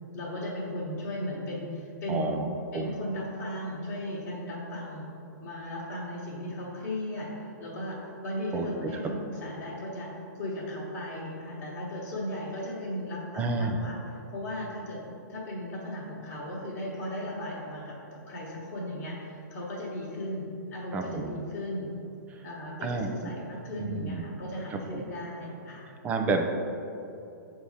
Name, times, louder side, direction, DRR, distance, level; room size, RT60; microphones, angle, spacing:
voice 1, 0.1-2.3 2.7-5.1 5.4-14.0 14.3-15.0 15.3-21.9 22.4-25.8, left 1 dB, 25° left, -11 dB, 1.3 m, -36 dB
voice 2, 2.1-2.5 2.7-2.9 8.5-8.9 13.3-13.8 20.9-21.3 22.8-23.3 23.8-24.2 24.7-25.0 26.0-26.4, right 3 dB, 15° right, 3 dB, 0.4 m, -30 dB
7.4 x 2.7 x 4.9 m, 2.7 s
hypercardioid pair, 155°, 10 cm